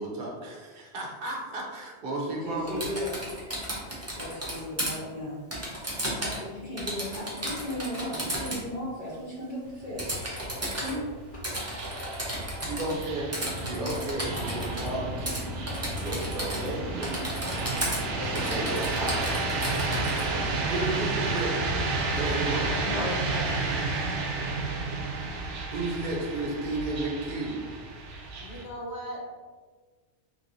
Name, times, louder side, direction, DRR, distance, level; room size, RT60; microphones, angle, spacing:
voice 1, 0.0-2.8 12.6-13.3 13.5-17.6 18.1-21.5 21.8-22.7 25.7-27.6, right 2 dB, 55° right, -2 dB, 0.9 m, -34 dB
voice 2, 2.4-3.2 4.2-5.4 6.2-10.2 10.8-11.0 11.3-11.4 19.8-20.2 22.8-23.5, left 1 dB, 40° left, -8 dB, 1.0 m, -36 dB
Typing, 2.7-4.9 5.5-6.5 6.8-8.6 10.0-10.9 11.4-13.0 13.3-14.9 15.3-15.4 15.7-16.7 17.0-18.0 18.3-20.2, right 1 dB, 15° right, 0.6 m, -34 dB
sound 1, 9.7-28.6, right 3 dB, 85° right, 0.9 m, -31 dB
voice 3, 28.4-29.3, equal, 70° left, -1 dB, 0.9 m, -38 dB
3.2 x 3.0 x 2.6 m, 1.4 s
omnidirectional pair, 1.2 m